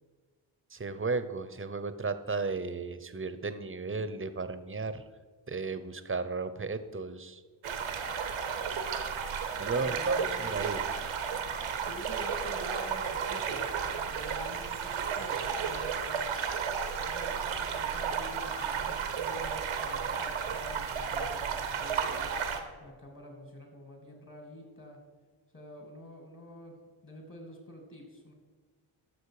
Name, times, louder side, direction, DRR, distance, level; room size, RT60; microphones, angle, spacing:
voice 1, 0.7-5.1 5.5-7.4 9.6-10.8, right 4 dB, 25° right, 12 dB, 0.8 m, -34 dB
sound 1, 7.6-22.6, right 6 dB, 85° right, 1.1 m, -33 dB
voice 2, 9.8-10.7 11.8-16.4 17.0-22.3 22.8-25.0 25.5-26.7 27.0-28.3, equal, 40° left, 2 dB, 2.7 m, -48 dB
11.5 x 6.5 x 4.9 m, 1.4 s
cardioid pair, 45°, 48 cm